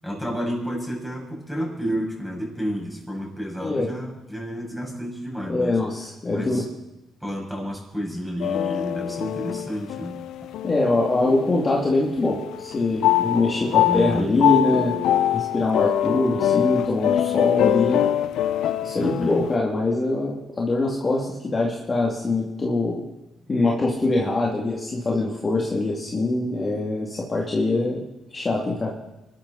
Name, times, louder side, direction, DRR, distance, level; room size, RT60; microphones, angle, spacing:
voice 1, 0.0-5.8 6.3-6.6 7.2-10.2 13.9-14.4 19.0-19.4, equal, ahead, -2 dB, 7.0 m, -30 dB
voice 2, 3.6-3.9 5.5-6.6 10.6-14.9 15.3-18.0 18.8-23.0 23.5-28.0 28.3-28.9, left 2 dB, 30° left, -3 dB, 3.0 m, -23 dB
sound 1, 8.4-11.9 12.3-19.6, left 11 dB, 80° left, 0.7 m, -24 dB
24.0 x 13.0 x 4.4 m, 0.96 s
cardioid pair, 90°, 0 cm